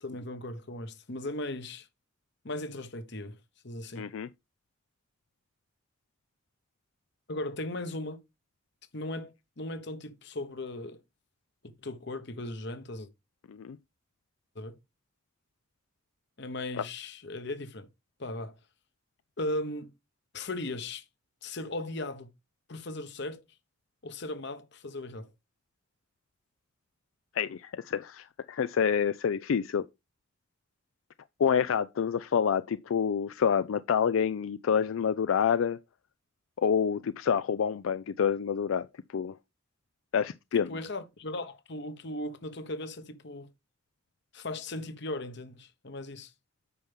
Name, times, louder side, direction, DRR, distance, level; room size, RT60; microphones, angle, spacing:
voice 1, 0.0-1.9 2.4-3.4 3.6-4.0 7.3-8.2 8.9-9.3 9.6-11.0 11.8-13.1 14.5-14.7 16.4-17.9 18.2-18.5 19.4-19.9 20.3-21.0 21.4-22.3 22.7-23.4 24.0-25.3 40.5-43.5 44.3-46.3, left 1 dB, 60° left, 1.2 m, -37 dB
voice 2, 4.0-4.3 13.5-13.8 16.8-16.9 27.3-29.9 31.4-35.8 36.6-38.9 39.1-39.4 40.1-40.7, left 7 dB, 90° left, 0.4 m, -27 dB
8.5 x 5.7 x 3.5 m
head